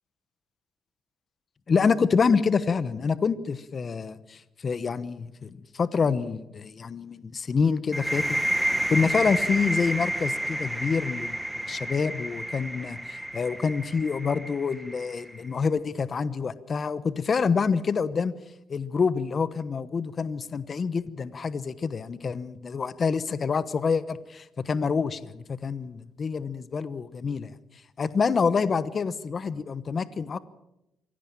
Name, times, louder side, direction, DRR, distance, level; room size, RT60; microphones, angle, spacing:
voice 1, 1.7-5.5 5.7-11.4 11.7-18.3 18.7-27.5 28.0-30.4, left 5 dB, 40° left, 15 dB, 1.1 m, -27 dB
sound 1, 7.9-15.5, right 1 dB, 5° right, 1.3 m, -30 dB
24.5 x 17.0 x 7.4 m, 0.88 s
cardioid pair, 90°, 0 cm